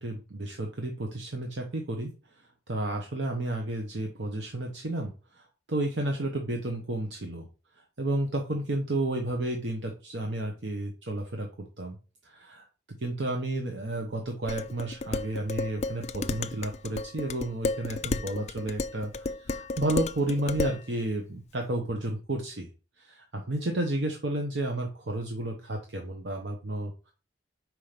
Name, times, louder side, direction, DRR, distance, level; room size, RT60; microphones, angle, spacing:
voice 1, 0.0-2.1 2.7-7.5 8.0-12.0 12.2-12.7 13.0-19.1 19.5-22.7 23.0-27.1, right 1 dB, 65° right, 2 dB, 1.0 m, -32 dB
Dishes pots and pans, 14.5-20.8, left 3 dB, 35° left, 0.3 m, -33 dB
5.1 x 4.7 x 5.8 m, 0.34 s
head